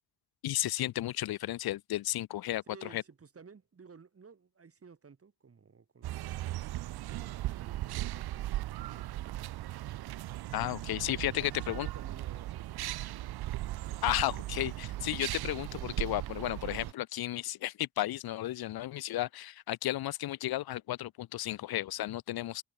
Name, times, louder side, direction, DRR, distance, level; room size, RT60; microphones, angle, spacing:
voice 1, 0.4-3.0 10.5-11.9 14.0-22.6, left 14 dB, 75° left, 0.5 m, -33 dB
voice 2, 2.7-9.4 11.3-13.2, right 5 dB, 40° right, 4.4 m, -55 dB
sound 1, 6.0-16.9, right 15 dB, 80° right, 0.5 m, -38 dB
wide cardioid pair, 155°, 37 cm